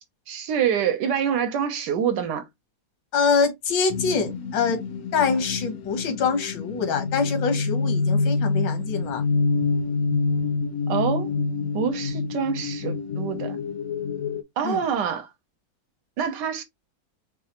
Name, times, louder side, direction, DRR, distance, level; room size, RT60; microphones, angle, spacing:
voice 1, 0.3-2.4 10.9-11.3 11.7-13.6 14.6-15.3 16.2-16.6, right 8 dB, 75° right, 1.4 m, -26 dB
voice 2, 3.1-4.8 5.1-9.2 14.6-14.8, left 5 dB, 85° left, 1.7 m, -24 dB
sound 1, 3.9-14.4, left 4 dB, 70° left, 0.8 m, -27 dB
4.7 x 2.4 x 2.9 m
omnidirectional pair, 1.9 m